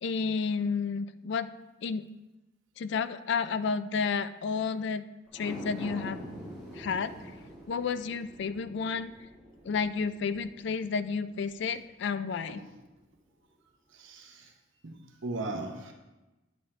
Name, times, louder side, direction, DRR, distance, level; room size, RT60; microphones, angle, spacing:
voice 1, 0.0-1.5 1.8-2.1 2.8-5.0 5.3-6.2 6.7-7.1 7.7-9.1 9.6-12.6, left 5 dB, 60° left, 13 dB, 0.3 m, -31 dB
sound 1, 5.3-11.8 12.2-12.3, equal, 5° right, 2.5 m, -45 dB
voice 2, 12.5-12.8 13.9-14.5 14.8-15.9, right 2 dB, 65° right, 1 dB, 0.9 m, -38 dB
9.4 x 7.1 x 3.2 m, 1.1 s
head